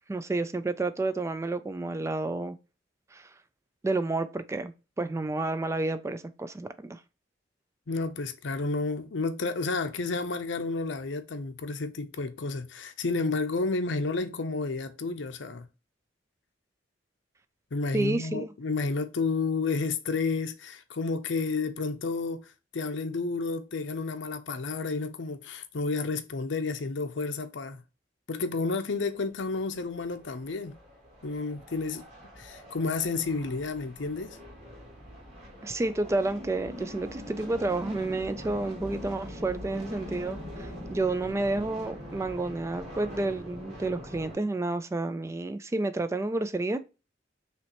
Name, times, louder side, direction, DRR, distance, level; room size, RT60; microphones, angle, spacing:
voice 1, 0.1-2.6 3.1-3.3 3.8-7.0 17.9-18.5 35.6-46.8, right 2 dB, 15° right, 0.3 m, -30 dB
voice 2, 7.9-15.7 17.7-22.4 22.7-27.8 28.3-30.7 31.2-32.0 32.4-34.4, left 3 dB, 70° left, 0.6 m, -31 dB
sound 1, 29.6-44.4, equal, 35° right, 2.4 m, -43 dB
5.8 x 3.1 x 2.9 m
head